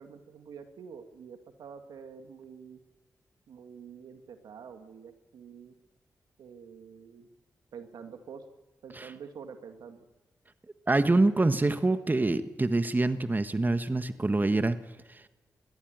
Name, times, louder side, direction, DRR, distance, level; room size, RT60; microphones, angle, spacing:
voice 1, 0.0-2.8 3.5-5.7 6.4-7.3 7.7-8.5 8.8-10.1, right 6 dB, 85° right, 7 dB, 1.9 m, -47 dB
voice 2, 10.9-14.8 15.1-15.2, right 2 dB, 25° right, 11 dB, 1.4 m, -25 dB
21.5 x 14.5 x 9.3 m, 1.2 s
supercardioid pair, 45°, 7 cm